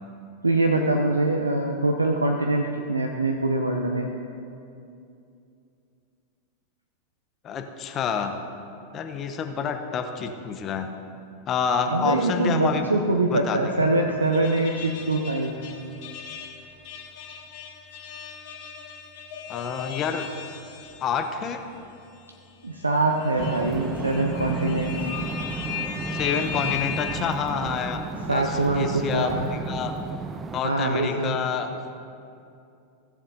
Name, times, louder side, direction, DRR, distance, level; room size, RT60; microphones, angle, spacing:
voice 1, 0.4-4.1 11.9-15.5 22.6-25.0 28.3-29.5 30.6-31.4, right 2 dB, 80° right, 3 dB, 0.6 m, -24 dB
voice 2, 7.4-8.4 8.9-10.9 11.5-12.9 13.3-13.9 19.5-20.3 21.0-21.6 26.1-28.0 28.3-29.9 30.5-31.7, left 6 dB, 30° left, 6 dB, 0.8 m, -28 dB
sound 1, 14.2-21.3 21.7-21.8 22.8-27.2, left 8 dB, 50° left, 1.4 m, -36 dB
sound 2, 23.4-30.6, right 4 dB, 20° right, 0.5 m, -33 dB
16.5 x 7.1 x 3.9 m, 2.6 s
figure-of-eight pair, 90°, 0 cm